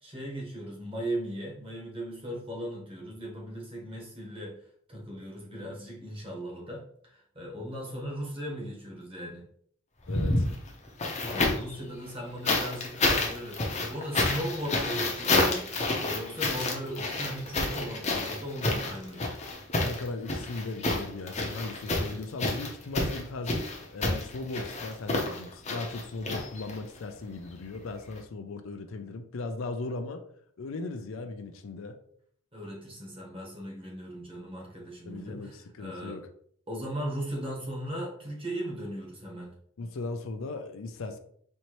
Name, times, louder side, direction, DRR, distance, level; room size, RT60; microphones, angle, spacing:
voice 1, 0.0-4.6 4.9-9.5 10.9-19.3 32.5-36.2 36.7-39.5, right 1 dB, 25° right, -2 dB, 1.2 m, -38 dB
sound 1, 10.0-11.7 12.4-27.0 28.1-28.2, left 2 dB, 30° left, 0.7 m, -29 dB
voice 2, 10.1-10.5 19.8-30.2 30.6-32.0 35.1-36.2 39.8-41.2, left 3 dB, 75° left, 7 dB, 0.4 m, -38 dB
4.4 x 2.7 x 3.0 m, 0.63 s
head